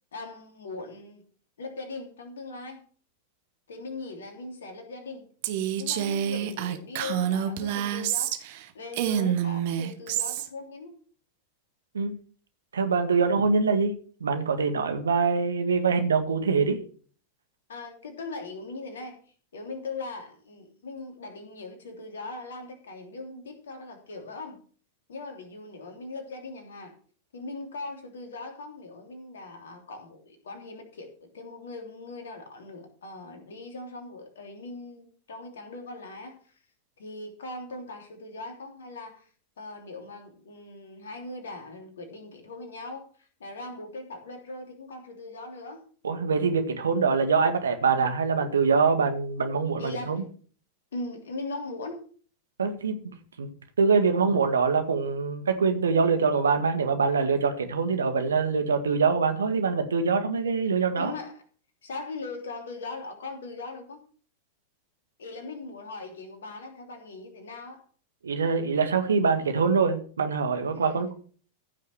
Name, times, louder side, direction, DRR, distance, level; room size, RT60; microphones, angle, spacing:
voice 1, 0.1-1.2 1.6-2.8 3.7-5.2 5.8-8.3 8.7-11.0 17.7-19.2 19.5-24.6 25.1-26.9 27.3-36.5 37.0-39.3 39.6-45.8 49.8-50.2 50.9-52.0 54.0-54.1 60.9-61.4 61.8-64.0 65.2-67.8 70.7-71.1, left 3 dB, 65° left, 4 dB, 3.1 m, -40 dB
Female speech woman speaking, 5.4-8.6 8.9-10.5, right 10 dB, 50° right, 1.4 m, -27 dB
voice 2, 12.7-13.9 14.2-16.8 46.0-50.2 52.6-53.0 53.4-53.5 53.8-61.1 68.2-71.1, right 5 dB, 70° right, 6 dB, 1.9 m, -24 dB
15.0 x 6.5 x 5.9 m, 0.43 s
figure-of-eight pair, 90°, 0 cm